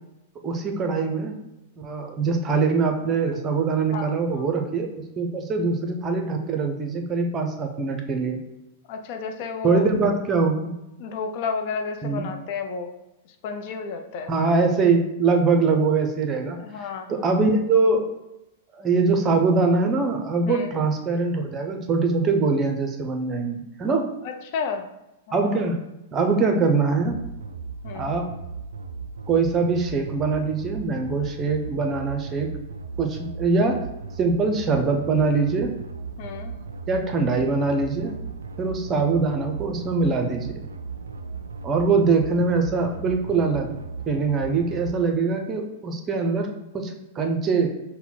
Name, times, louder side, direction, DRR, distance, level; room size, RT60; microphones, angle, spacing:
voice 1, 0.4-1.4 1.8-8.4 9.6-10.7 12.0-12.2 14.3-18.1 18.8-24.1 25.3-25.8 26.1-27.2 27.9-28.3 29.3-32.5 33.0-33.8 34.2-35.7 36.9-38.1 38.6-40.6 41.6-43.7 44.1-47.7, right 4 dB, 25° right, 4 dB, 0.8 m, -23 dB
voice 2, 3.9-4.4 8.9-9.9 11.0-12.9 13.4-14.3 16.6-17.3 20.4-20.7 24.2-24.9 25.3-25.6 27.8-28.1 36.2-36.6, left 5 dB, 50° left, 5 dB, 0.6 m, -32 dB
sound 1, 27.0-45.0, right 4 dB, 85° right, 0.3 m, -36 dB
5.6 x 2.2 x 4.0 m, 0.91 s
figure-of-eight pair, 100°, 0 cm